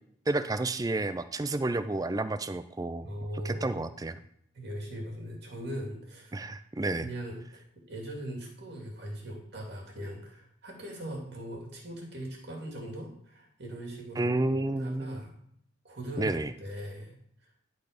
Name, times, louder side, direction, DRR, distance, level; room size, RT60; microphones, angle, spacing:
voice 1, 0.3-3.1 3.4-4.2 6.3-7.1 14.2-15.2 16.2-16.5, right 2 dB, 15° right, 12 dB, 0.4 m, -30 dB
voice 2, 3.0-3.8 4.5-6.4 6.9-15.3 15.8-16.3 16.6-17.1, right 1 dB, 55° right, -1 dB, 2.4 m, -40 dB
11.0 x 4.1 x 5.1 m, 0.70 s
head